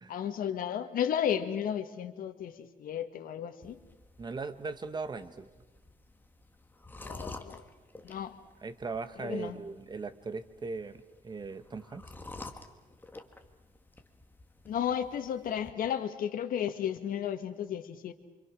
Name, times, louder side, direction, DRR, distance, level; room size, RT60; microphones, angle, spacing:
voice 1, 0.1-3.8 7.0-7.6 8.0-8.3 9.2-9.6 14.6-18.1, left 9 dB, 85° left, 8 dB, 1.7 m, -33 dB
sound 1, 3.6-15.7, left 2 dB, 15° left, 1.9 m, -50 dB
voice 2, 4.2-5.5 8.6-12.0, right 4 dB, 30° right, 11 dB, 1.2 m, -39 dB
28.0 x 26.0 x 6.2 m, 1.1 s
cardioid pair, 125°, 14 cm